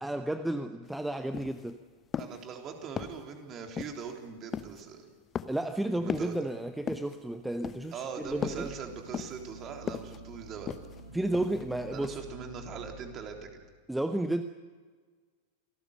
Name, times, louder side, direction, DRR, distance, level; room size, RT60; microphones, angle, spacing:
voice 1, 0.0-1.8 5.5-8.7 11.1-12.2 13.9-14.4, right 1 dB, 5° right, 9 dB, 0.9 m, -32 dB
sound 1, 0.9-1.0 1.3-1.7 2.1-2.5 3.0-3.3 3.8-4.1 4.5-4.8 5.3-5.7 6.1-6.4 6.9-7.2 7.6-8.0 8.4-8.7 9.1-9.5 9.9-10.2 10.7-11.0 11.3-11.7 12.0-12.1, left 7 dB, 25° left, 0.9 m, -37 dB
voice 2, 2.2-5.1 5.9-6.4 7.9-10.7 11.9-13.6, right 6 dB, 30° right, 3 dB, 3.6 m, -41 dB
sound 2, 7.8-13.7, right 1 dB, 75° right, 7.7 m, -49 dB
28.0 x 18.5 x 6.7 m, 1.5 s
figure-of-eight pair, 90°, 0 cm